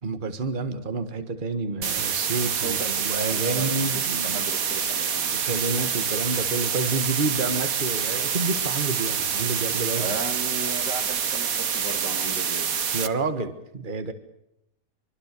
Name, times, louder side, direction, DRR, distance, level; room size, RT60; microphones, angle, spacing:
voice 1, 0.0-4.5 5.3-10.2 12.9-14.1, right 3 dB, 30° right, 9 dB, 1.8 m, -29 dB
sound 1, 1.8-13.1, right 7 dB, 55° right, 1.7 m, -27 dB
voice 2, 2.6-2.9 3.3-5.4 9.9-12.7, right 3 dB, 75° right, 6 dB, 3.6 m, -36 dB
25.0 x 25.0 x 6.8 m, 0.81 s
omnidirectional pair, 1.8 m